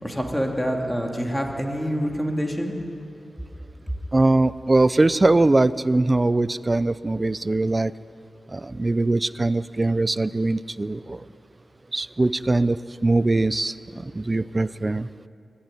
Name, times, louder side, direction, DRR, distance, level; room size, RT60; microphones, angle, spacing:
voice 1, 0.0-2.7, equal, 5° left, 1 dB, 3.0 m, -26 dB
voice 2, 4.1-7.9 8.5-11.2 11.9-12.8 13.0-15.1, right 2 dB, 25° right, 15 dB, 0.6 m, -21 dB
23.5 x 16.0 x 10.0 m, 2.6 s
wide cardioid pair, 90°, 0 cm